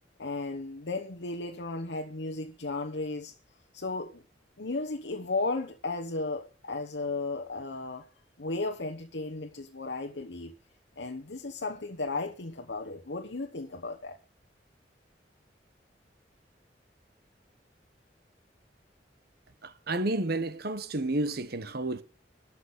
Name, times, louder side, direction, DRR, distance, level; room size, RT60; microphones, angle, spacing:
voice 1, 0.2-3.3 3.7-4.2 4.6-8.1 8.4-10.5 11.0-14.2, left 3 dB, 75° left, 1.1 m, -35 dB
voice 2, 19.6-22.0, right 2 dB, 60° right, 1.1 m, -31 dB
13.0 x 6.0 x 7.8 m
head